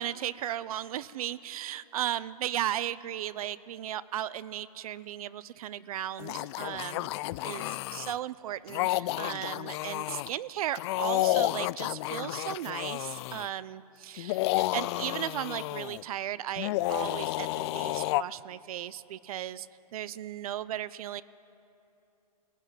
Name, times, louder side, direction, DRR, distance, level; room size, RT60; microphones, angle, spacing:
voice 1, 0.0-7.1 7.4-19.7 19.9-21.2, right 11 dB, 65° right, 17 dB, 0.6 m, -36 dB
sound 1, 6.2-8.2 8.7-10.3 10.7-13.5 14.2-16.0 16.6-18.2, left 18 dB, 45° left, 0.4 m, -31 dB
19.5 x 16.0 x 9.2 m, 2.9 s
hypercardioid pair, 130°, 20 cm